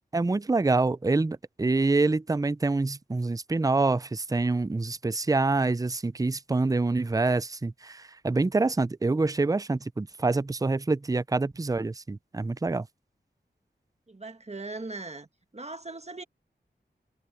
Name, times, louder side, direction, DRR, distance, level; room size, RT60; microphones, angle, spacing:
voice 1, 0.1-12.9, right 3 dB, 20° right, 0.4 m, -26 dB
voice 2, 14.1-15.3 15.5-16.2, right 3 dB, 35° right, 1.5 m, -39 dB
wide cardioid pair, 50°, 19 cm